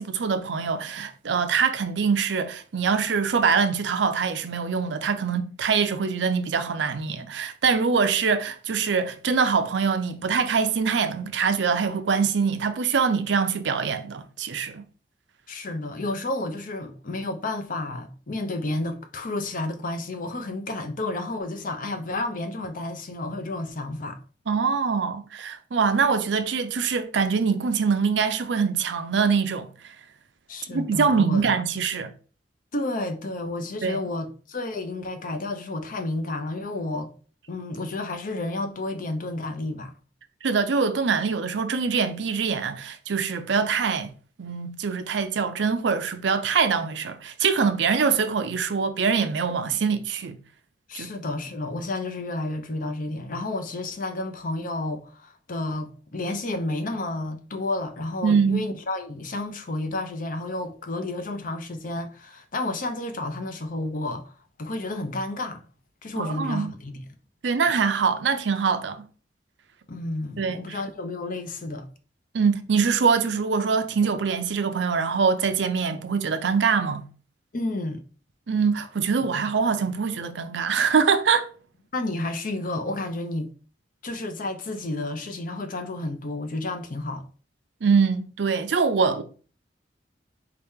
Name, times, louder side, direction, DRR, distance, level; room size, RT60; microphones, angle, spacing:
voice 1, 0.0-14.8 24.5-29.7 30.7-32.1 33.8-34.0 40.4-44.1 44.4-50.4 50.9-51.1 58.2-58.6 66.2-66.7 67.4-69.1 70.4-70.8 72.3-77.1 78.5-81.5 87.8-89.2, right 5 dB, 90° right, 0.5 m, -24 dB
voice 2, 15.5-24.2 30.5-31.5 32.7-37.1 37.5-39.9 50.9-65.6 66.0-67.0 69.9-71.9 77.5-78.0 81.9-83.5 84.0-87.3, left 2 dB, 50° left, 0.6 m, -31 dB
4.3 x 2.9 x 3.6 m
head